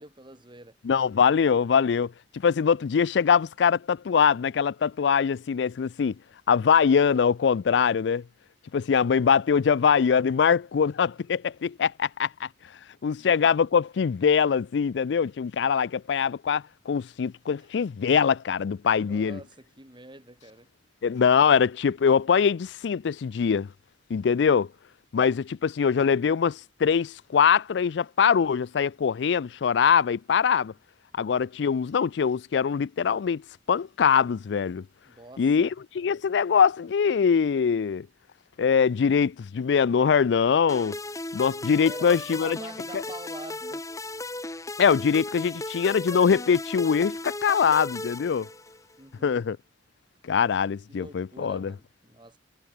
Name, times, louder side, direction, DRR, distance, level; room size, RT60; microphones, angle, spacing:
voice 1, 0.0-0.8 13.2-13.4 17.5-17.7 18.9-20.7 35.1-35.7 41.8-43.9 49.0-49.5 50.9-52.4, right 2 dB, 25° right, 6.0 m, -46 dB
voice 2, 0.8-2.1 2.4-6.1 6.5-8.2 8.7-12.5 13.0-19.4 21.0-23.7 24.1-24.7 25.1-30.7 31.1-33.4 33.7-34.8 35.4-35.7 36.0-38.1 38.6-41.0 41.3-42.6 42.9-43.0 44.8-48.5 49.2-49.6 50.2-51.7, left 6 dB, 70° left, 0.4 m, -23 dB
sound 1, 40.7-49.0, left 2 dB, 20° left, 2.7 m, -36 dB
head